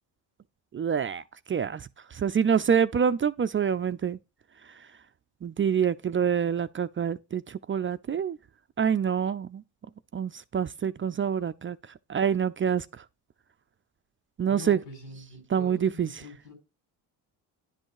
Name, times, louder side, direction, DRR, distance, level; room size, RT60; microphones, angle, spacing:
voice 1, 0.7-4.2 5.4-8.4 8.8-9.6 10.1-11.8 12.1-12.9 14.4-14.8 15.5-16.1, right 7 dB, 30° right, 0.4 m, -26 dB
voice 2, 14.5-16.5, left 3 dB, 85° left, 4.8 m, -44 dB
10.5 x 5.4 x 4.7 m
cardioid pair, 90°, 42 cm